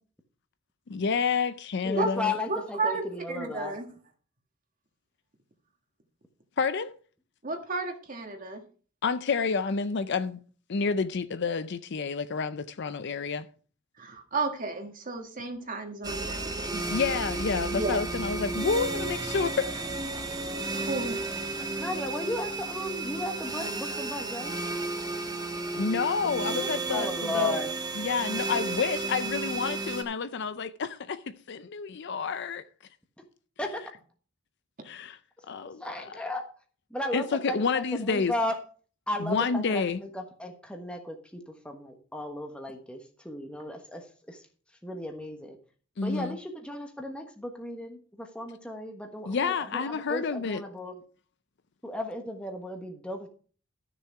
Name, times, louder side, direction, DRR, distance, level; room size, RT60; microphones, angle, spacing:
voice 1, 0.9-2.3 6.6-6.9 9.0-10.4 10.7-13.5 16.9-19.9 25.7-27.6 27.9-32.6 34.8-35.2 35.5-35.9 37.1-38.3 39.2-40.0 46.0-46.4 49.3-50.6, left 5 dB, 60° left, 0.5 m, -29 dB
voice 2, 1.8-3.7 21.6-24.6 26.2-27.7 33.6-33.7 35.4-35.5 35.8-36.4 36.9-38.6 39.1-44.4 44.8-45.6 46.0-51.0 51.8-53.3, left 1 dB, 5° left, 1.3 m, -35 dB
voice 3, 2.5-3.9 7.4-8.6 14.0-16.9 17.8-18.0 20.7-21.5, right 3 dB, 40° right, 1.7 m, -33 dB
sound 1, 16.0-30.0, right 3 dB, 20° right, 1.4 m, -33 dB
12.5 x 6.9 x 4.7 m
head